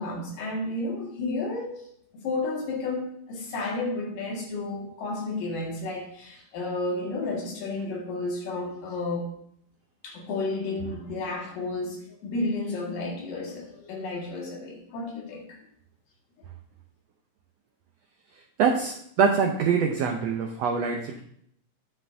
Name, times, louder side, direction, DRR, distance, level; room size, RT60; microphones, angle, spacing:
voice 1, 0.0-1.9 2.1-9.3 10.0-15.6, left 2 dB, 75° left, -1 dB, 3.5 m, -32 dB
voice 2, 18.6-21.2, right 6 dB, 90° right, 3 dB, 1.4 m, -24 dB
9.8 x 9.4 x 2.6 m, 0.69 s
omnidirectional pair, 3.9 m